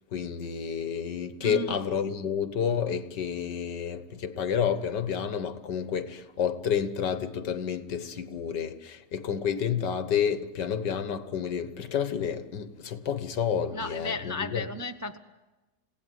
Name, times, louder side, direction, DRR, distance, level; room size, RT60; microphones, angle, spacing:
voice 1, 0.1-14.7, left 7 dB, 90° left, 2.0 m, -30 dB
voice 2, 1.4-1.8 13.7-15.2, left 2 dB, 25° right, 0.4 m, -34 dB
29.0 x 17.5 x 9.5 m
omnidirectional pair, 1.8 m